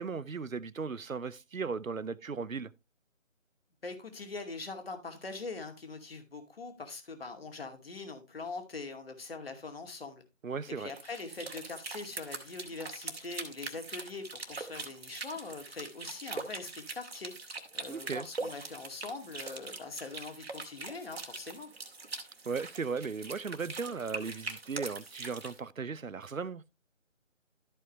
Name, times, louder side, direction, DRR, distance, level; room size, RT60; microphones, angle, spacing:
voice 1, 0.0-2.7 10.4-10.9 17.9-18.3 22.4-26.7, right 5 dB, 85° right, 0.8 m, -37 dB
voice 2, 3.8-10.2 10.8-17.3 17.7-21.7, left 3 dB, 45° left, 2.4 m, -42 dB
sound 1, 10.8-25.6, right 3 dB, 50° right, 2.3 m, -42 dB
13.5 x 5.5 x 3.1 m
figure-of-eight pair, 155°, 39 cm